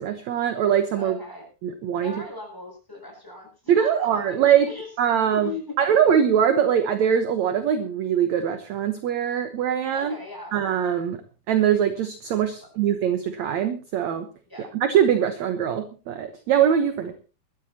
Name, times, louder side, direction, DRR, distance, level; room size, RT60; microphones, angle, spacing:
voice 1, 0.0-1.2 1.6-2.1 3.7-4.7 5.0-5.5 5.8-10.1 10.5-11.2 11.5-14.3 14.6-17.1, right 9 dB, 65° right, 8 dB, 1.9 m, -22 dB
voice 2, 1.0-1.5 2.0-4.9 5.3-5.8 9.9-10.5 12.6-12.7 14.5-14.7, left 3 dB, 5° left, 0 dB, 7.4 m, -38 dB
21.5 x 14.0 x 2.9 m, 0.33 s
omnidirectional pair, 4.5 m